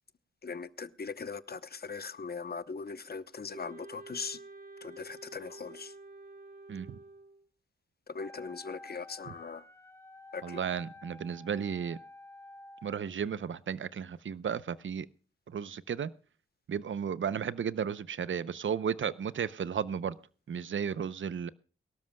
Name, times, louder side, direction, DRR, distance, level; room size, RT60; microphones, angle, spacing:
voice 1, 0.4-4.4 4.8-5.9 8.1-9.6 10.3-10.6, left 5 dB, 50° left, 0.9 m, -40 dB
Wind instrument woodwind instrument, 3.5-7.5, right 3 dB, 45° right, 2.6 m, -50 dB
voice 2, 6.7-7.0 9.3-9.4 10.4-12.0 12.8-15.1 15.5-16.1 16.7-20.1 20.5-21.5, right 7 dB, 70° right, 0.7 m, -34 dB
Wind instrument woodwind instrument 2, 8.2-13.0, left 2 dB, 10° left, 1.6 m, -51 dB
23.0 x 13.0 x 2.3 m
wide cardioid pair, 90°, 21 cm